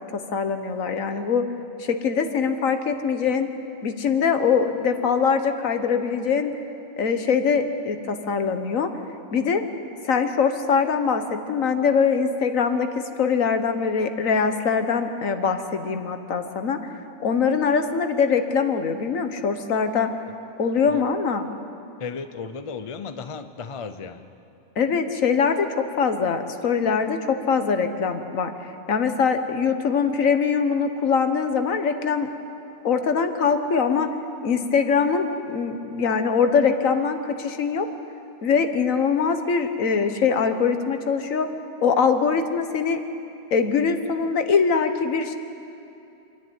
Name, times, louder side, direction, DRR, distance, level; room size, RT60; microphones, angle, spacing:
voice 1, 0.1-1.5 1.8-3.5 3.8-6.5 7.0-8.9 9.3-9.6 10.0-16.8 17.2-20.1 20.6-21.5 24.8-28.5 28.9-32.3 32.8-34.1 34.4-37.9 38.4-41.5 41.8-43.0 43.5-45.4, left 6 dB, 65° left, 8 dB, 1.5 m, -22 dB
voice 2, 22.0-24.3, left 5 dB, 35° left, 10 dB, 0.5 m, -35 dB
26.5 x 10.5 x 9.4 m, 2.8 s
omnidirectional pair, 1.5 m